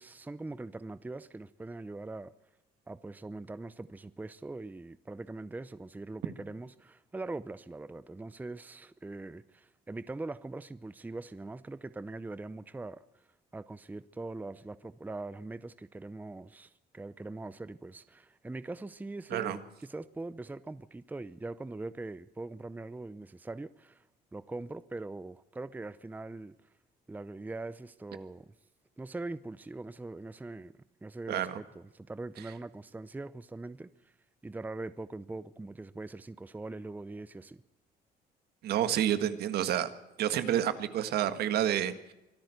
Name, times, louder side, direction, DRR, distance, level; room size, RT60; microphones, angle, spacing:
voice 1, 0.0-2.3 2.9-13.2 13.5-24.0 24.3-26.5 27.1-28.5 29.0-30.7 31.0-34.1 34.4-37.6, right 2 dB, 10° right, 0.6 m, -42 dB
voice 2, 31.3-31.6 38.6-39.9 40.2-42.1, right 11 dB, 70° right, 1.7 m, -29 dB
24.0 x 13.5 x 8.1 m
cardioid pair, 110°, 17 cm